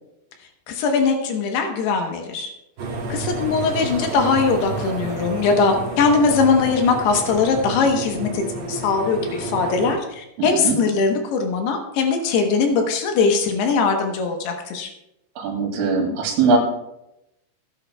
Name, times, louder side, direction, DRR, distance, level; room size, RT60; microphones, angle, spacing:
voice 1, 0.7-2.5 3.1-14.9, left 4 dB, 75° left, 4 dB, 2.5 m, -21 dB
sound 1, 2.8-10.0, right 3 dB, 60° right, 3.5 m, -30 dB
voice 2, 10.4-10.8 15.4-16.6, right 4 dB, 75° right, 1 dB, 4.6 m, -20 dB
18.0 x 10.0 x 2.2 m, 0.86 s
omnidirectional pair, 6.0 m